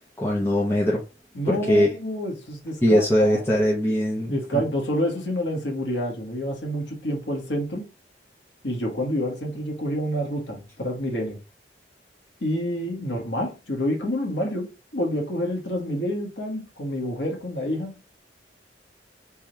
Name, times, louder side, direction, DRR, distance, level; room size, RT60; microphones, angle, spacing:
voice 1, 0.2-1.0 1.5-1.9 2.8-4.6, equal, 15° left, 0.7 m, -21 dB
voice 2, 1.3-3.4 4.2-7.9 8.6-11.4 12.4-17.9, equal, 90° left, 1.7 m, -28 dB
3.6 x 2.8 x 4.5 m
head